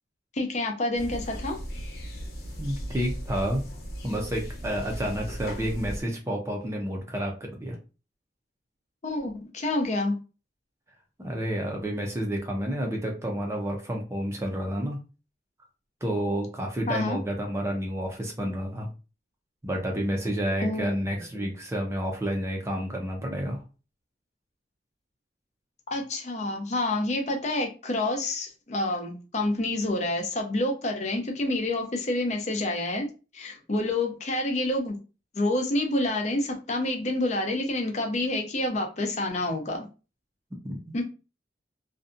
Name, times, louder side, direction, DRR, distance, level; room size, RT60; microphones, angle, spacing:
voice 1, 0.3-1.6 9.0-10.1 16.9-17.2 20.6-20.9 21.1-21.5 25.9-35.0 35.3-39.9 40.9-41.0, left 2 dB, 40° left, 3 dB, 0.5 m, -28 dB
sound 1, 1.0-6.0, equal, 60° left, 0.8 m, -37 dB
voice 2, 2.6-3.6 4.0-7.8 11.2-15.0 16.0-18.9 19.6-23.6 40.6-40.9, equal, 15° right, 1 dB, 0.5 m, -30 dB
2.6 x 2.2 x 2.5 m, 0.32 s
head